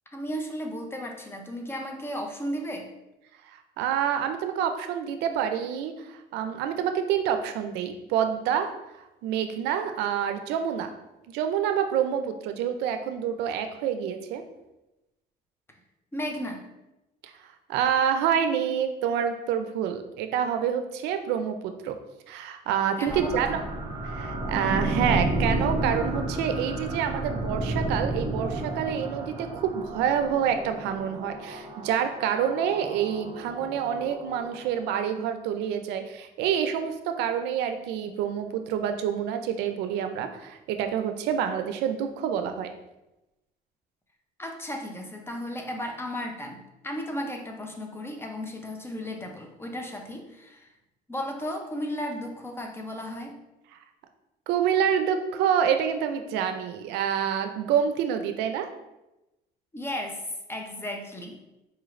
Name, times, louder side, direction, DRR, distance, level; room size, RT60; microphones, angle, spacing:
voice 1, 0.1-2.9 16.1-16.6 23.0-23.4 44.4-46.6 46.8-50.7 51.1-53.3 59.7-60.2 60.5-61.4, equal, 15° left, 2 dB, 0.5 m, -34 dB
voice 2, 3.8-8.7 9.0-10.9 11.3-14.4 17.2-17.3 17.7-22.0 22.3-23.6 24.0-42.7 54.5-58.7, right 8 dB, 90° right, 7 dB, 0.4 m, -27 dB
sound 1, 23.1-35.0, right 2 dB, 25° right, 0.8 m, -32 dB
4.2 x 3.1 x 2.5 m, 0.95 s
cardioid pair, 110°, 17 cm